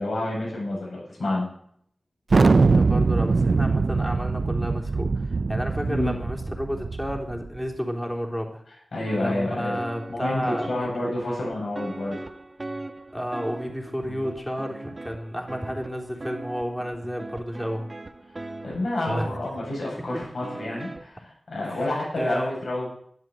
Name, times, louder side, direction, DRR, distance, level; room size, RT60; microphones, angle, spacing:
voice 1, 0.0-1.5 5.8-6.2 8.9-9.8 10.1-12.2 18.6-22.9, left 1 dB, 85° left, -2 dB, 7.6 m, -29 dB
Thunder, 2.3-7.5, right 4 dB, 75° right, 0.5 m, -22 dB
voice 2, 2.5-8.6 9.2-10.9 13.1-17.9 19.1-19.4 20.1-20.2 21.6-21.9 22.1-22.5, equal, 5° left, 1 dB, 3.5 m, -31 dB
sound 1, 9.1-21.0, right 2 dB, 40° right, 1.4 m, -40 dB
12.5 x 12.5 x 7.8 m, 0.65 s
wide cardioid pair, 55°, 0 cm